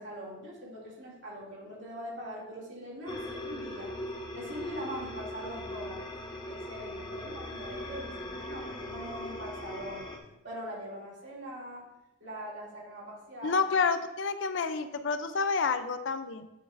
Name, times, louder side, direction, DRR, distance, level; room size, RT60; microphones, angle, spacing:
voice 1, 0.0-3.9 4.3-6.0 6.5-10.1 10.4-11.9 12.2-13.6, equal, 60° right, -4 dB, 2.6 m, -42 dB
sound 1, 3.1-10.2, left 1 dB, 20° left, 0.7 m, -40 dB
voice 2, 13.4-16.5, left 5 dB, 65° left, 10 dB, 0.5 m, -29 dB
9.1 x 6.5 x 2.6 m, 0.94 s
head